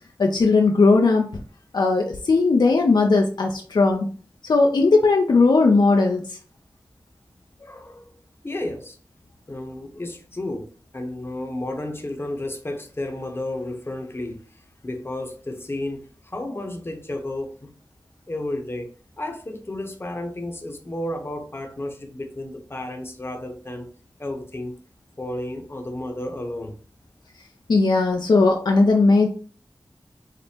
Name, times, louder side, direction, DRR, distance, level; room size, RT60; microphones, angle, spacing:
voice 1, 0.2-1.4 1.7-4.1 4.4-6.4 27.7-29.3, left 3 dB, 65° left, 0.5 m, -18 dB
voice 2, 7.6-8.1 8.4-9.0 9.5-17.7 18.3-23.9 24.2-24.8 25.2-26.8, left 1 dB, 30° left, 0.8 m, -32 dB
5.0 x 2.0 x 2.8 m
cardioid pair, 45°, 8 cm